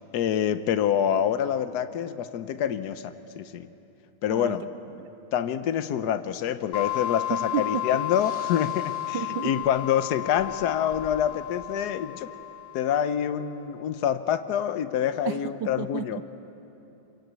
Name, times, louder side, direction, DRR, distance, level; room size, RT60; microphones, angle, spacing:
voice 1, 0.1-3.7 4.2-4.6 5.3-12.3 12.7-16.2, left 9 dB, 65° left, 11 dB, 1.3 m, -26 dB
sound 1, 6.7-13.2, left 15 dB, 80° left, 1.8 m, -33 dB
voice 2, 7.3-8.0 9.1-9.5 15.2-16.2, right 9 dB, 75° right, 11 dB, 1.4 m, -32 dB
Breathing, 8.0-10.0 10.2-11.3, right 1 dB, 45° right, 5.3 m, -50 dB
25.5 x 22.5 x 8.4 m, 2.9 s
omnidirectional pair, 2.1 m